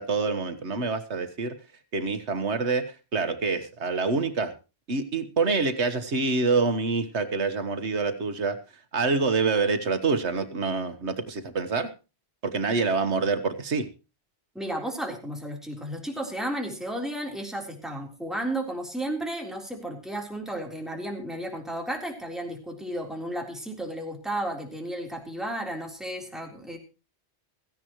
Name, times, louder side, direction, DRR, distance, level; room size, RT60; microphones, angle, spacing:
voice 1, 0.0-1.5 1.9-4.5 4.9-8.6 8.9-11.9 12.4-13.9, right 4 dB, 90° right, 9 dB, 1.7 m, -26 dB
voice 2, 14.6-26.8, right 1 dB, ahead, 1 dB, 3.7 m, -33 dB
17.0 x 15.0 x 3.1 m, 0.31 s
omnidirectional pair, 1.1 m